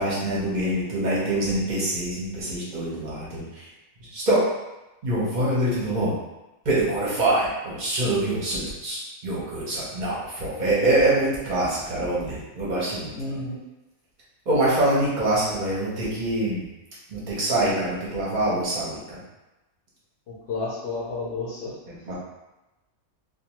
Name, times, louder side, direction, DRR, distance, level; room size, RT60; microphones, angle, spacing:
voice 1, 0.0-3.6 4.1-4.5 5.0-6.2 6.7-13.1 14.5-16.6 17.1-19.2 22.1-22.2, right 1 dB, 45° right, -7 dB, 0.6 m, -25 dB
voice 2, 13.1-13.6 20.3-22.1, left 3 dB, 65° left, -5 dB, 0.7 m, -32 dB
2.5 x 2.2 x 2.9 m, 1.0 s
omnidirectional pair, 1.5 m